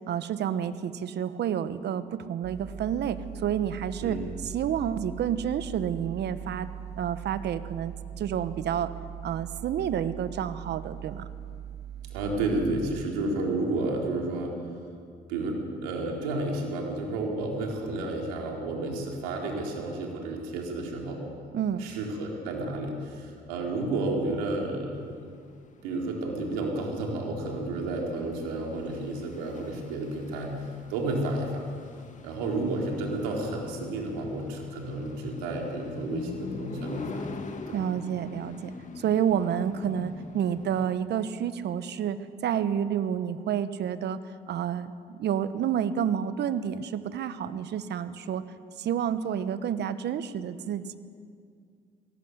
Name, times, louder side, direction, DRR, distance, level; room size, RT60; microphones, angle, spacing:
voice 1, 0.1-4.2 4.4-6.7 7.0-8.9 9.2-11.3 21.5-21.8 37.7-44.2 44.5-48.4 48.8-51.0, right 9 dB, 65° right, 13 dB, 1.3 m, -29 dB
sound 1, 2.4-13.1, right 10 dB, 35° right, 2.4 m, -41 dB
voice 2, 12.1-14.5 15.3-21.2 21.8-25.2 25.8-30.5 30.9-31.6 32.2-37.3 37.7-37.8, right 2 dB, 90° right, 0 dB, 4.0 m, -31 dB
sound 2, 25.0-40.9, left 4 dB, 40° left, 2.3 m, -44 dB
21.5 x 18.0 x 8.1 m, 2.2 s
supercardioid pair, 60°, 19 cm